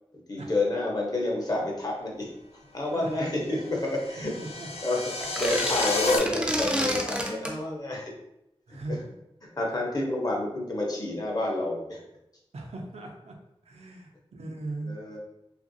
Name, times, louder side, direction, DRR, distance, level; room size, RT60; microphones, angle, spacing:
voice 1, 0.3-2.3 2.7-4.5 4.8-8.1 8.7-9.0 9.6-12.0 14.8-15.2, left 2 dB, 40° left, -2 dB, 0.7 m, -29 dB
sound 1, 3.6-6.2, left 2 dB, 70° left, 0.4 m, -30 dB
voice 2, 4.2-4.7 8.7-9.0 12.5-13.4 13.6-14.9, right 2 dB, 85° right, 1 dB, 0.5 m, -38 dB
sound 2, 5.2-7.6, equal, 10° right, 0.4 m, -29 dB
2.9 x 2.5 x 2.6 m, 0.82 s
wide cardioid pair, 90°, 10 cm